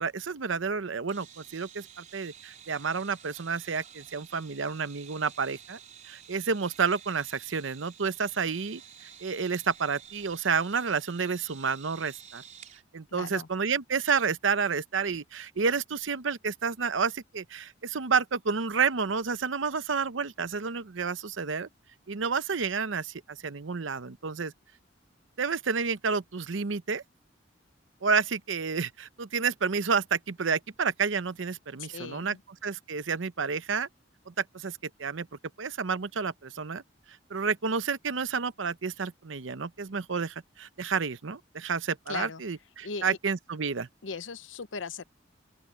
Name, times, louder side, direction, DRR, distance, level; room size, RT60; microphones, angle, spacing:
voice 1, 0.0-5.8 6.1-8.8 9.2-12.4 12.9-21.7 22.1-24.5 25.4-27.0 28.0-32.4 32.6-33.9 34.3-35.3 35.6-36.8 37.3-43.9, right 5 dB, 85° right, 0.8 m, -30 dB
sound 1, 1.1-12.8, right 8 dB, 40° right, 4.3 m, -51 dB
voice 2, 13.1-13.5 31.8-32.4 42.1-42.4 42.8-43.2 44.0-45.0, left 5 dB, 85° left, 0.9 m, -38 dB
open air
head